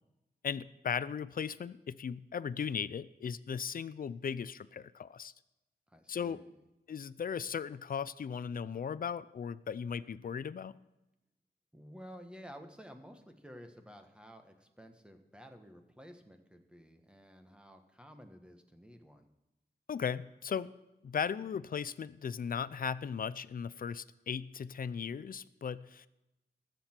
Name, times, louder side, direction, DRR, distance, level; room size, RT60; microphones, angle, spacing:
voice 1, 0.4-5.3 6.1-6.4 6.9-10.7 19.9-20.7 21.0-26.1, left 7 dB, 55° left, 17 dB, 0.5 m, -37 dB
voice 2, 5.9-6.5 11.7-19.3, equal, 5° right, 5 dB, 1.3 m, -53 dB
19.5 x 7.8 x 4.4 m, 0.95 s
wide cardioid pair, 115°, 17 cm